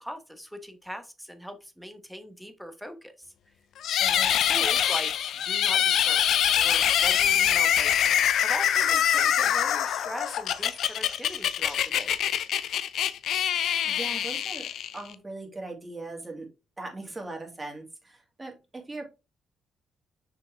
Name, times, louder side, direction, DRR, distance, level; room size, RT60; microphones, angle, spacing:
voice 1, 0.0-3.3 4.4-6.2 6.6-12.2, equal, ahead, 8 dB, 1.2 m, -40 dB
sound 1, 3.8-15.1, left 10 dB, 70° left, 0.5 m, -24 dB
voice 2, 4.0-4.4 13.8-16.5 16.8-19.0, right 2 dB, 20° right, 1 dB, 2.4 m, -40 dB
6.4 x 4.8 x 3.4 m, 0.28 s
cardioid pair, 90°, 0 cm